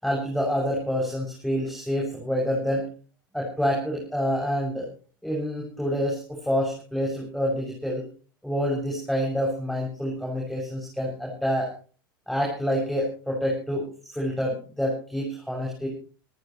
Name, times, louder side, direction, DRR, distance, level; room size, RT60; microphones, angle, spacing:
voice 1, 0.0-2.9 3.3-4.9 5.2-8.0 8.4-11.7 12.3-13.9 14.1-15.9, equal, ahead, -1 dB, 7.5 m, -27 dB
27.0 x 14.0 x 3.2 m, 0.39 s
hypercardioid pair, 105°, 12 cm